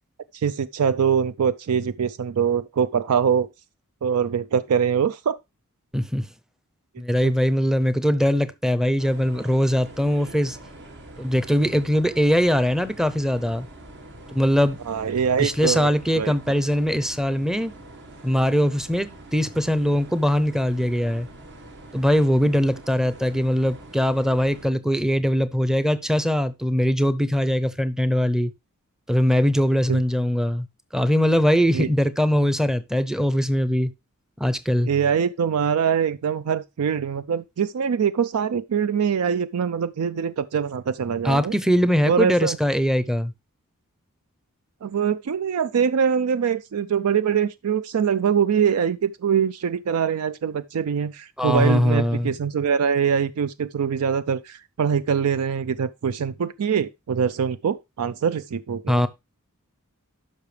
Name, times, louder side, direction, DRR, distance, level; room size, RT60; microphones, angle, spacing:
voice 1, 0.3-3.5 4.0-5.4 7.2-7.3 14.9-15.9 16.2-16.3 29.9-30.0 31.7-31.9 34.9-41.5 42.1-42.6 44.8-59.0, right 7 dB, 85° right, 0.4 m, -23 dB
voice 2, 5.9-6.3 7.0-10.6 11.2-13.7 14.3-14.8 15.4-17.7 18.2-21.3 21.9-28.5 29.1-30.7 30.9-33.9 34.4-34.9 41.2-43.3 51.4-52.3 58.9-59.1, equal, ahead, 0.6 m, -21 dB
sound 1, 9.0-24.7, right 1 dB, 55° right, 1.5 m, -44 dB
12.0 x 5.6 x 3.3 m
head